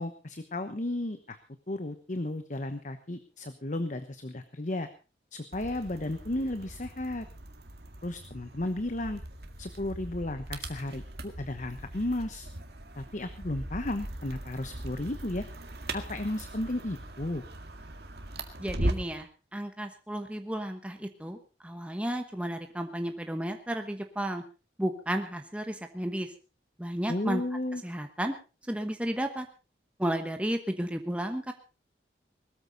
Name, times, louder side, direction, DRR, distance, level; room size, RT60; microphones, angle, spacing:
voice 1, 0.0-1.4 1.7-4.9 5.3-7.2 8.0-9.2 9.6-12.5 13.0-15.4 15.9-17.4 27.1-27.8, left 1 dB, 45° left, 10 dB, 1.0 m, -34 dB
sound 1, 5.5-19.2, right 1 dB, 60° right, 2.0 m, -39 dB
voice 2, 18.6-21.4 21.6-24.4 24.8-26.3 26.8-27.4 27.8-28.3 28.7-29.5 30.0-31.5, right 1 dB, 5° right, 5 dB, 1.1 m, -33 dB
20.0 x 13.5 x 4.0 m, 0.33 s
head